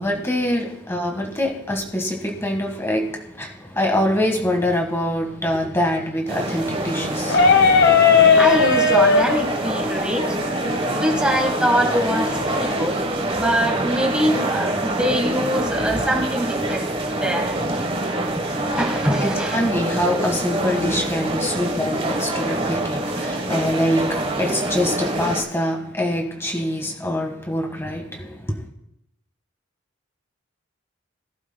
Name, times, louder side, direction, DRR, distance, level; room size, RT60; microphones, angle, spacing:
voice 1, 0.0-7.7 18.4-18.8 19.2-28.6, left 1 dB, 15° left, 1.6 m, -24 dB
sound 1, 6.3-25.4, right 1 dB, 30° right, 1.2 m, -25 dB
sound 2, 7.2-12.9, left 5 dB, 55° left, 1.1 m, -18 dB
voice 2, 8.2-12.3 12.6-13.0 13.3-17.7 18.3-19.6, equal, 5° right, 1.5 m, -24 dB
21.5 x 11.5 x 2.2 m
head